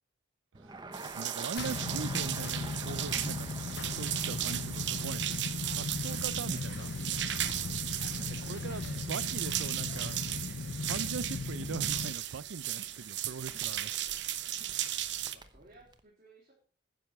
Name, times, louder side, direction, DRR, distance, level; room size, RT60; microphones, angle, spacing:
Crackle, 0.5-16.0, right 3 dB, 25° right, 0.9 m, -50 dB
voice 1, 0.6-3.6 3.9-6.9 7.9-10.2 10.8-13.9, right 5 dB, 85° right, 0.5 m, -41 dB
sound 1, 0.9-15.4, right 12 dB, 65° right, 0.8 m, -36 dB
sound 2, 1.6-12.1, left 3 dB, 60° left, 0.5 m, -38 dB
voice 2, 6.5-7.5 8.3-9.1 13.6-14.2 15.3-16.5, right 2 dB, 40° right, 3.6 m, -58 dB
12.0 x 10.0 x 4.7 m
head